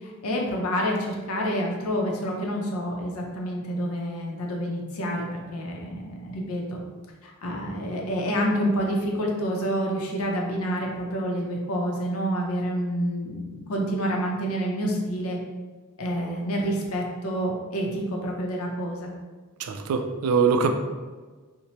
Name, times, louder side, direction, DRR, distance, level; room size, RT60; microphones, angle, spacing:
voice 1, 0.0-6.8 7.2-15.4 16.0-19.1, equal, 80° left, 0 dB, 0.6 m, -28 dB
voice 2, 19.6-20.8, right 5 dB, 80° right, 6 dB, 0.3 m, -23 dB
2.9 x 2.1 x 2.8 m, 1.4 s
head